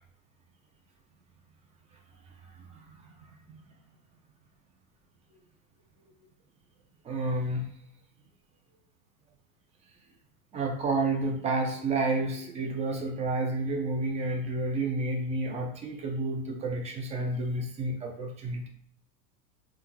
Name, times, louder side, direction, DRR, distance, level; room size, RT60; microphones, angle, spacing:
voice 1, 7.1-7.6 10.5-18.7, right 2 dB, 15° right, 2 dB, 0.3 m, -30 dB
3.4 x 2.3 x 2.8 m, 0.63 s
hypercardioid pair, 85°, 49 cm